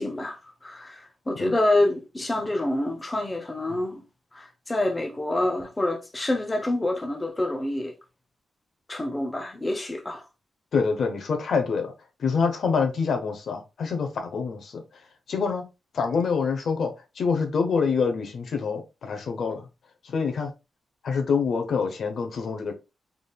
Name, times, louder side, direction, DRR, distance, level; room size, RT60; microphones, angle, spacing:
voice 1, 0.0-4.1 4.3-7.9 8.9-10.2, left 1 dB, 20° left, 0.7 m, -27 dB
voice 2, 10.7-11.9 12.2-15.0 15.3-15.7 15.9-19.7 20.0-20.5 21.0-22.7, left 5 dB, 65° left, 0.8 m, -26 dB
3.8 x 3.5 x 2.3 m
cardioid pair, 110°, 0 cm